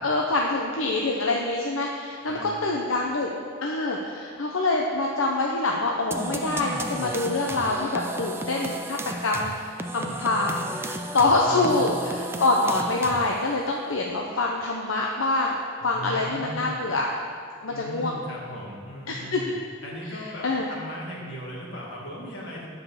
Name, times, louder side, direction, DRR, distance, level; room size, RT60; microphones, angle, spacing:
voice 1, 0.0-3.3 3.6-10.6 11.1-17.1 17.6-18.1 19.1-19.4 20.1-20.7, left 2 dB, 85° left, -1 dB, 0.8 m, -25 dB
sound 1, 6.1-13.5, right 2 dB, 10° right, 0.4 m, -34 dB
voice 2, 11.4-11.9 12.6-12.8 15.8-16.7 17.7-19.5 19.8-22.7, equal, 65° left, -4 dB, 2.3 m, -38 dB
9.7 x 5.3 x 7.0 m, 2.2 s
head